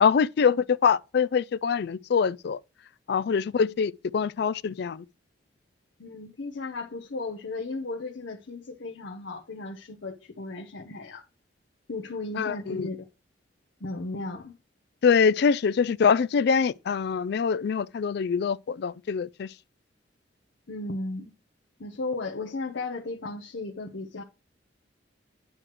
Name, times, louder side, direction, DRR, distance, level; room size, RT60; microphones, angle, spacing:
voice 1, 0.0-2.6 3.1-5.0 12.4-12.9 15.0-19.5, left 6 dB, 60° left, 0.4 m, -24 dB
voice 2, 6.0-11.2 11.9-13.0 13.8-14.6 20.7-21.3 21.8-24.2, left 3 dB, 85° left, 0.9 m, -35 dB
9.8 x 3.3 x 5.9 m
head